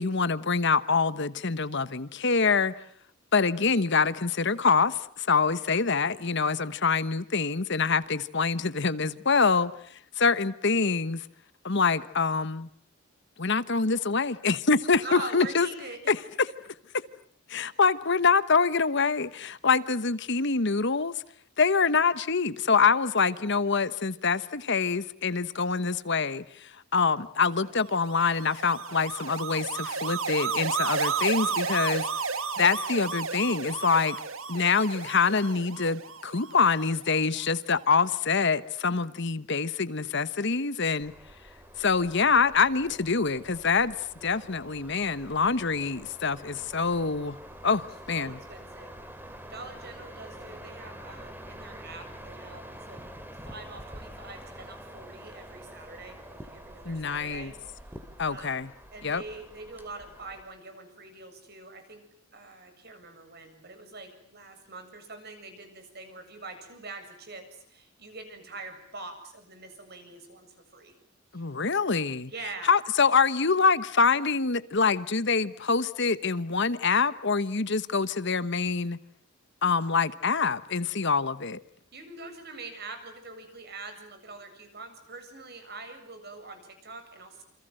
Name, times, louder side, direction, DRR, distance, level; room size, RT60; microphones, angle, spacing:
voice 1, 0.0-2.7 3.3-11.2 11.6-12.7 13.4-15.7 16.1-16.2 17.5-21.1 21.6-32.0 32.6-34.2 34.5-41.1 41.8-43.9 44.2-47.4 47.6-48.4 56.8-57.5 58.2-58.7 59.0-59.2 71.3-72.3 72.7-79.0 79.6-81.6, left 5 dB, 55° left, 1.2 m, -25 dB
voice 2, 15.0-16.1 48.1-49.0 49.5-53.0 53.4-58.6 58.9-62.0 62.3-70.9 71.3-71.5 72.3-72.7 81.9-87.4, right 3 dB, 50° right, 7.6 m, -44 dB
sound 1, 27.9-37.2, right 5 dB, 75° right, 1.9 m, -33 dB
sound 2, 41.0-60.4, right 1 dB, 10° right, 3.0 m, -46 dB
28.5 x 27.0 x 7.8 m
head